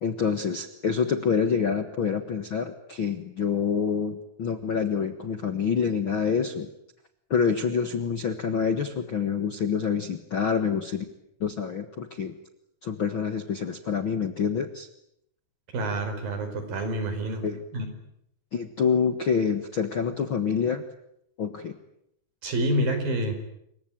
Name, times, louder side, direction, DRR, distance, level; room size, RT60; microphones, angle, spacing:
voice 1, 0.0-6.7 7.3-11.0 11.4-12.4 12.8-14.9 17.4-17.6 18.5-20.8 21.4-21.7, left 6 dB, 50° left, 8 dB, 1.5 m, -27 dB
voice 2, 15.7-17.4 17.7-17.9 22.4-23.4, right 1 dB, 65° right, 7 dB, 6.5 m, -27 dB
28.0 x 23.5 x 9.0 m, 0.77 s
omnidirectional pair, 4.4 m